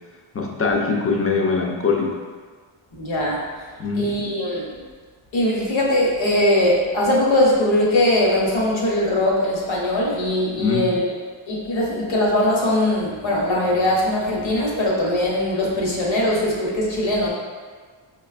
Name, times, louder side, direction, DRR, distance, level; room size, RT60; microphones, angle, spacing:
voice 1, 0.3-2.2 3.8-4.2 10.6-10.9, left 4 dB, 30° left, 1 dB, 0.5 m, -22 dB
voice 2, 3.0-3.4 3.9-4.7 5.3-11.1 11.5-17.3, left 1 dB, 65° left, -4 dB, 1.0 m, -20 dB
5.0 x 2.3 x 2.4 m, 1.5 s
wide cardioid pair, 85°, 50 cm